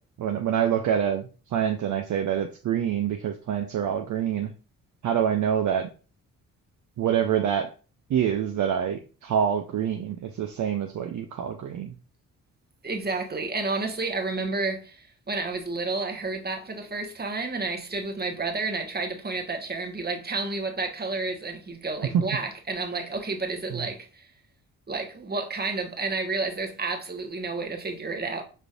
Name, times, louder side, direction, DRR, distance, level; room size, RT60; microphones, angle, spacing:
voice 1, 0.2-4.5 5.0-5.9 7.0-7.7 8.1-11.9 22.1-22.2 23.7-23.9, right 9 dB, 45° right, 0.6 m, -26 dB
voice 2, 12.8-24.3 24.9-28.4, right 3 dB, 25° right, 1.1 m, -30 dB
5.1 x 3.2 x 2.5 m
hypercardioid pair, 45°, 42 cm